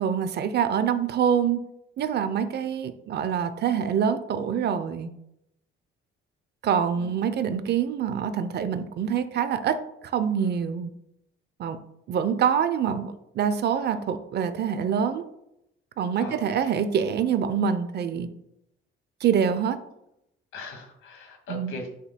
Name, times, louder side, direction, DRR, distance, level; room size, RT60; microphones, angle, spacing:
voice 1, 0.0-1.6 2.0-5.1 6.6-9.8 10.0-10.9 11.6-11.8 12.1-15.2 16.0-18.3 19.2-19.8 21.5-21.7, right 8 dB, 50° right, 11 dB, 0.6 m, -25 dB
voice 2, 16.2-16.7 20.5-21.9, left 2 dB, 70° left, 3 dB, 2.0 m, -40 dB
8.7 x 5.3 x 2.2 m, 0.80 s
cardioid pair, 120°, 21 cm